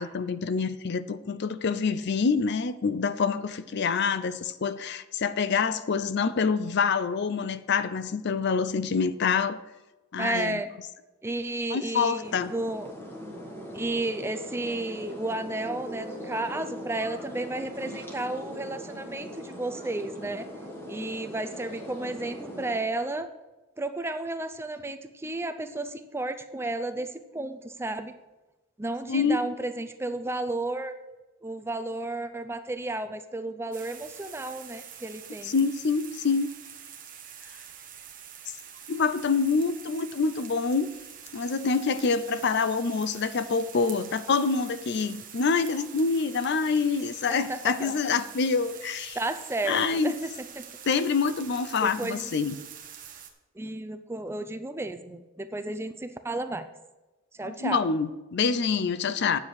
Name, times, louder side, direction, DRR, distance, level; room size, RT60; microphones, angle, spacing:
voice 1, 0.0-9.6 10.1-10.6 11.7-12.5 29.1-29.4 35.4-36.5 38.9-40.9 41.3-49.2 49.6-50.1 50.9-52.6 57.4-59.4, left 5 dB, 55° left, 14 dB, 0.5 m, -26 dB
voice 2, 10.2-10.7 11.2-12.9 13.7-20.5 20.9-23.3 23.8-28.1 28.8-31.0 31.4-35.5 47.3-47.9 49.1-50.7 51.8-52.2 53.6-56.7 57.3-57.9, right 2 dB, 10° right, 9 dB, 0.5 m, -33 dB
sound 1, 12.2-22.8, equal, 10° left, 1.3 m, -40 dB
sound 2, 33.7-53.3, right 8 dB, 40° right, 1.1 m, -46 dB
9.6 x 7.4 x 4.8 m, 1.1 s
head